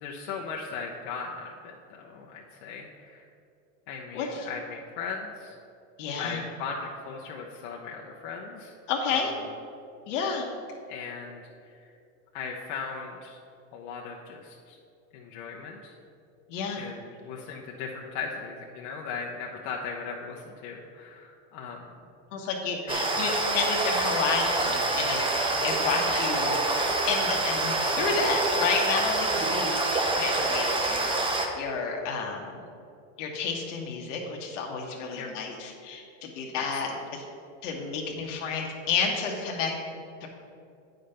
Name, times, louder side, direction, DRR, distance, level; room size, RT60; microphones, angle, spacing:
voice 1, 0.0-3.2 3.9-5.5 6.2-8.7 9.1-9.3 10.9-11.7 12.3-13.4 13.7-14.8 15.1-15.9 16.8-21.8 22.9-23.2 23.6-23.7 26.1-26.2 29.5-29.6 35.1-35.3 36.5-37.0, left 5 dB, 55° left, -1 dB, 0.9 m, -38 dB
voice 2, 4.1-4.5 6.0-6.4 8.9-9.3 10.1-10.5 16.5-16.8 22.3-32.6 33.2-37.2 37.6-39.7 40.2-40.3, left 5 dB, 70° left, 0 dB, 1.3 m, -31 dB
sound 1, 22.9-31.5, right 2 dB, 15° right, 0.8 m, -26 dB
9.1 x 5.2 x 5.7 m, 2.5 s
supercardioid pair, 130°, 38 cm